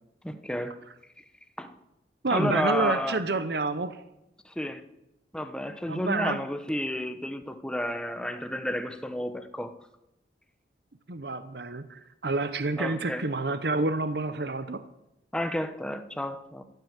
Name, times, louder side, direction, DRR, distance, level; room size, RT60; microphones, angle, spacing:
voice 1, 0.2-0.8 1.2-1.3 1.6-1.8 2.3-3.2 4.4-4.8 5.3-9.7 12.8-13.3 15.3-16.6, left 1 dB, 5° left, 0.9 m, -31 dB
voice 2, 2.2-4.0 5.9-6.4 11.1-14.8, right 3 dB, 60° right, 0.8 m, -28 dB
15.0 x 9.4 x 7.3 m
head